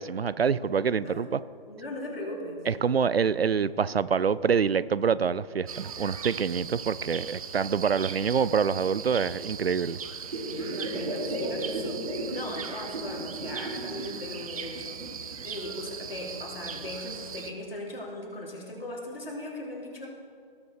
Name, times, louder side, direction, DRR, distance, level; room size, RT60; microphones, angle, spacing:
voice 1, 0.0-1.4 2.7-10.0, right 6 dB, 85° right, 18 dB, 0.5 m, -26 dB
voice 2, 1.7-2.6 10.5-20.1, left 1 dB, 75° left, -2 dB, 3.4 m, -38 dB
sound 1, 5.7-17.5, right 7 dB, 35° right, 0.6 m, -39 dB
sound 2, 10.2-12.4 12.7-14.1 14.5-15.4 16.0-16.1, right 1 dB, 60° right, 3.3 m, -34 dB
18.5 x 6.7 x 4.7 m, 2.2 s
figure-of-eight pair, 140°, 29 cm